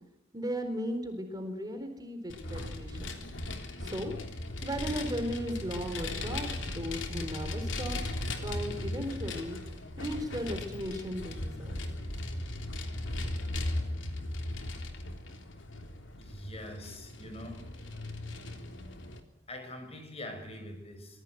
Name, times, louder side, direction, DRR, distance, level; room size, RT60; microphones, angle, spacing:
voice 1, 0.3-3.1 3.8-4.1 4.6-8.0 8.4-9.6 10.0-11.8, equal, 20° right, 6 dB, 4.0 m, -36 dB
Vehicle, 2.3-19.2, left 1 dB, 80° left, 3.4 m, -37 dB
voice 2, 16.2-17.7 19.5-21.2, left 1 dB, 35° left, 6 dB, 5.9 m, -44 dB
25.5 x 20.5 x 9.3 m, 0.89 s
head